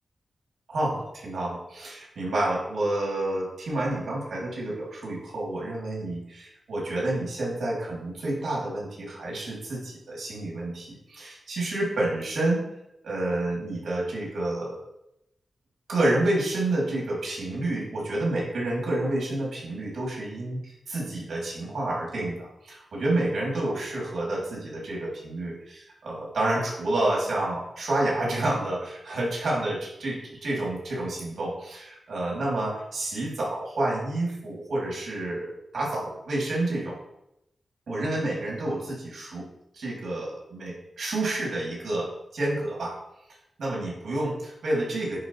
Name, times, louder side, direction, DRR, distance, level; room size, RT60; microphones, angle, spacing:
voice 1, 0.7-12.6 13.0-14.8 15.9-37.0 37.9-39.5 39.7-43.0 43.6-45.2, right 1 dB, 80° right, -4 dB, 2.5 m, -29 dB
9.5 x 4.0 x 3.0 m, 0.84 s
wide cardioid pair, 95°, 0 cm